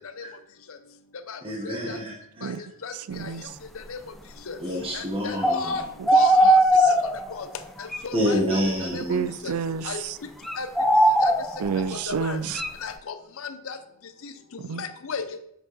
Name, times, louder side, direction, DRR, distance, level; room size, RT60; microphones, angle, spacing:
voice 1, 1.4-2.7 4.6-5.9 8.1-9.3 12.4-12.5, equal, 25° right, 1.1 m, -28 dB
voice 2, 3.1-3.4 9.1-10.2 11.6-12.6 14.6-14.8, right 6 dB, 85° right, 0.4 m, -29 dB
voice 3, 4.9-5.8 6.1-6.6 7.4-7.5 8.0-8.6 8.9-9.0 9.4-9.5 9.9-10.0 10.6-10.7 11.2-11.3 11.9-12.4 12.8-13.1 13.4-13.8 14.8-15.4, left 5 dB, 65° left, 0.6 m, -33 dB
sound 1, 5.4-5.7 6.1-7.4 7.9-8.0 8.7-9.3 10.4-11.8 12.5-12.7, right 1 dB, ahead, 0.4 m, -19 dB
7.5 x 5.0 x 3.9 m
head